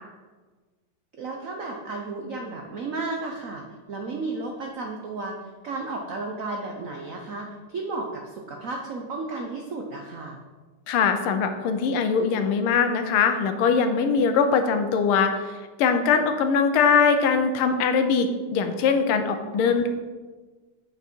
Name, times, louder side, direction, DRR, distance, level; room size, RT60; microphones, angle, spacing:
voice 1, 1.2-5.4 5.6-10.4 19.5-19.7, right 3 dB, 75° right, 1 dB, 0.7 m, -33 dB
voice 2, 10.9-15.3 15.8-19.9, left 5 dB, 80° left, 7 dB, 1.6 m, -21 dB
8.2 x 5.2 x 4.5 m, 1.3 s
omnidirectional pair, 2.4 m